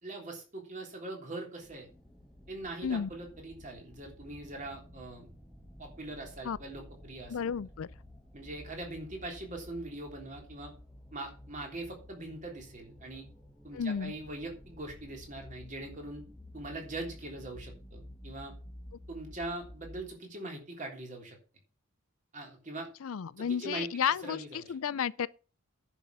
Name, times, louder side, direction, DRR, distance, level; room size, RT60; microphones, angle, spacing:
voice 1, 0.0-1.9 2.5-5.3 5.8-7.4 8.3-10.7 11.1-13.3 13.6-16.2 16.5-18.5 19.1-21.4 22.3-22.9 23.4-23.9 24.2-24.7, right 2 dB, 35° right, 3.4 m, -42 dB
sound 1, 1.6-20.0, left 1 dB, ahead, 1.9 m, -52 dB
voice 2, 7.3-7.9 13.7-14.1 23.0-25.3, left 7 dB, 70° left, 0.4 m, -32 dB
10.0 x 6.2 x 6.9 m
head